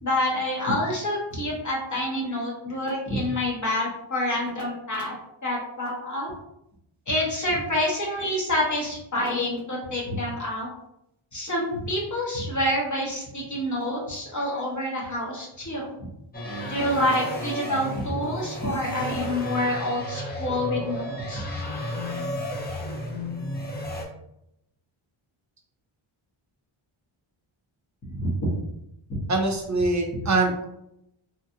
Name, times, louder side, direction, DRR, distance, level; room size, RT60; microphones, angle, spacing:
voice 1, 0.0-5.1 5.4-6.3 7.1-10.7 11.3-15.9 16.7-21.5 28.2-28.5 29.1-29.2, left 1 dB, 35° left, -4 dB, 1.1 m, -27 dB
sound 1, 16.3-24.0, left 1 dB, 20° left, 0.5 m, -32 dB
voice 2, 29.3-30.6, right 2 dB, 40° right, 1 dB, 0.4 m, -23 dB
3.1 x 2.4 x 2.7 m, 0.80 s
wide cardioid pair, 150°, 50 cm